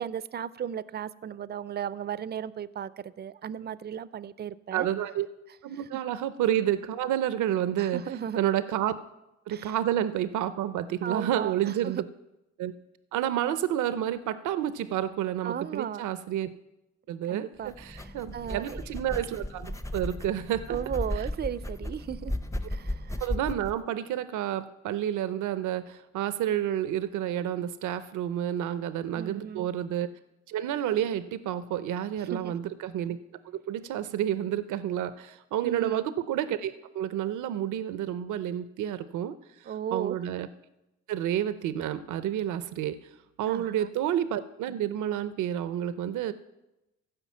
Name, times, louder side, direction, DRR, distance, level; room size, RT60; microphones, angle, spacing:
voice 1, 0.0-4.9 5.9-6.0 7.8-8.4 9.5-9.7 11.0-12.0 15.4-16.0 17.3-18.8 20.7-22.3 22.7-23.2 29.1-29.7 32.2-32.5 35.6-36.1 39.7-40.2 43.5-43.9, right 9 dB, 35° right, 17 dB, 0.4 m, -35 dB
voice 2, 4.7-5.3 5.6-8.0 8.4-8.9 9.5-12.0 12.6-12.7 13.1-16.5 17.1-20.8 21.2-21.3 23.2-30.1 30.5-33.2 33.7-39.4 39.9-40.5 41.1-43.0 43.4-46.3, right 11 dB, 80° right, 13 dB, 0.6 m, -30 dB
sound 1, 17.6-23.8, left 1 dB, 10° left, 0.6 m, -35 dB
15.5 x 5.3 x 7.2 m, 0.94 s
cardioid pair, 90°, 30 cm